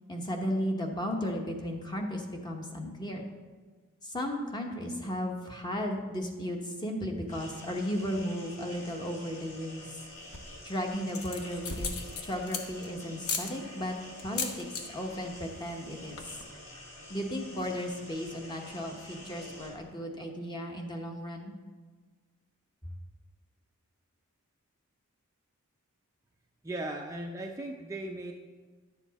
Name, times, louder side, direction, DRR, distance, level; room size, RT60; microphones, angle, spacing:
voice 1, 0.1-3.3 4.0-10.0 10.6-11.9 12.2-14.0 14.2-16.2 17.1-21.5, equal, 20° left, 2 dB, 1.1 m, -35 dB
sound 1, 7.3-19.7, left 1 dB, 35° left, 3.3 m, -48 dB
sound 2, 10.1-10.6 11.1-12.9 13.2-13.5 14.2-14.8 15.1-15.4 15.7-15.8 16.0-16.4, left 5 dB, 70° left, 1.0 m, -36 dB
voice 2, 26.6-28.3, right 1 dB, 15° right, 0 dB, 0.5 m, -37 dB
11.0 x 7.3 x 4.1 m, 1.4 s
head